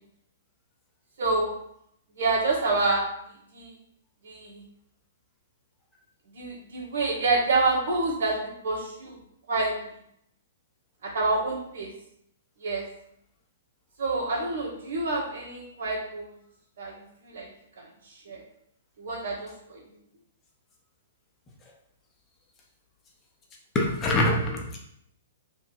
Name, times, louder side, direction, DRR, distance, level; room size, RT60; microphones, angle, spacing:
voice 1, 1.2-1.5 2.2-3.0 3.5-3.7 4.2-4.6 6.3-9.2 9.5-9.7 11.0-11.9 12.6-12.8 14.0-16.3 16.8-16.9 17.2-17.5 18.3-18.4 19.0-19.8, right 3 dB, 70° right, -4 dB, 1.9 m, -27 dB
voice 2, 23.7-24.8, left 1 dB, 20° left, 0 dB, 0.8 m, -24 dB
3.5 x 3.0 x 4.7 m, 0.71 s
hypercardioid pair, 135°, 0 cm